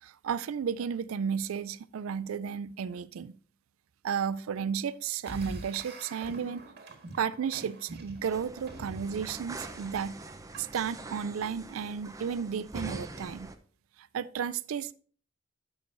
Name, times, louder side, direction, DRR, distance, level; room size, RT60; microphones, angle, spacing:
voice 1, 0.0-3.3 4.0-6.7 7.2-10.2 10.6-13.5 14.0-14.9, right 7 dB, 90° right, 0.4 m, -33 dB
sound 1, 5.2-11.1, right 2 dB, 55° right, 1.6 m, -46 dB
sound 2, 8.2-13.6, right 2 dB, 15° right, 0.6 m, -44 dB
11.0 x 7.1 x 2.6 m
head